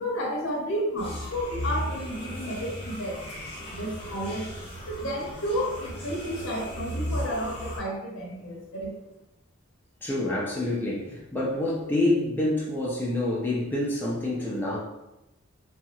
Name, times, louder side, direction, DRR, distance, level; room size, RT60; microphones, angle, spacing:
voice 1, 0.0-3.4 3.7-4.6 4.8-9.0, equal, 70° left, -3 dB, 0.7 m, -31 dB
sound 1, 1.0-7.8, equal, 30° left, 0.8 m, -36 dB
voice 2, 10.0-14.8, left 1 dB, 10° left, -6 dB, 0.4 m, -27 dB
2.8 x 2.3 x 2.8 m, 0.94 s
head